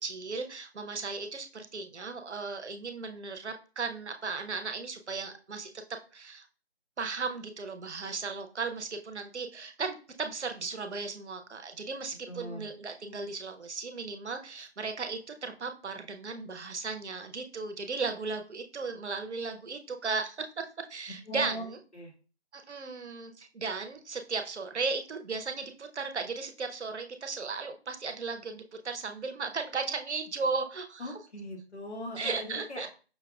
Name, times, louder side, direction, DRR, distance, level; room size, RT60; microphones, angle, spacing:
voice 1, 0.0-5.7 6.1-6.5 7.0-20.5 20.9-21.8 22.5-31.2 32.2-32.9, right 4 dB, 85° right, 7 dB, 0.7 m, -36 dB
voice 2, 12.3-12.7 21.3-21.6 21.9-22.1 31.0-32.9, equal, 85° left, 2 dB, 1.2 m, -40 dB
5.5 x 2.3 x 2.2 m, 0.36 s
figure-of-eight pair, 170°, 33 cm